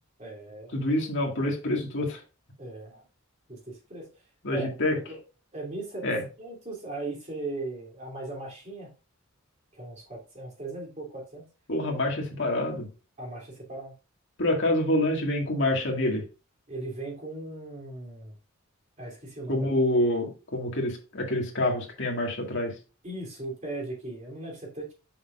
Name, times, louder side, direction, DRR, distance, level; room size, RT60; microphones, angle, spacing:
voice 1, 0.2-0.7 2.6-3.0 3.5-4.1 4.5-5.2 5.5-6.1 6.4-8.9 9.7-11.4 13.2-13.9 16.7-18.4 19.0-19.7 23.0-24.9, right 2 dB, 35° right, -2 dB, 2.8 m, -38 dB
voice 2, 0.7-2.2 4.4-5.0 6.0-6.2 11.7-12.9 14.4-16.2 19.5-22.7, left 1 dB, 60° left, 0 dB, 2.0 m, -27 dB
6.9 x 5.8 x 2.4 m, 0.32 s
head